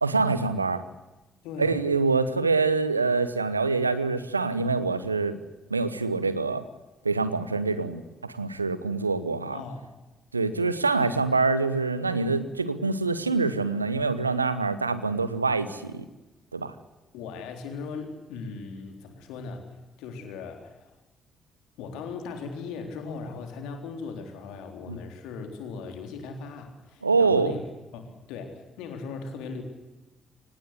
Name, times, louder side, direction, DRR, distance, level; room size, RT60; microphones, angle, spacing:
voice 1, 0.0-0.8 1.6-5.4 5.7-6.6 7.0-9.6 10.3-16.0 16.5-16.7 24.9-25.0 27.0-27.5, right 4 dB, 90° right, 14 dB, 1.0 m, -25 dB
voice 2, 1.4-1.8 7.7-7.8 9.5-9.9 17.1-19.7 20.0-20.9 21.8-27.6 27.9-29.6, left 4 dB, 70° left, 5 dB, 3.8 m, -38 dB
24.0 x 19.0 x 8.0 m, 1.1 s
figure-of-eight pair, 40°, 0 cm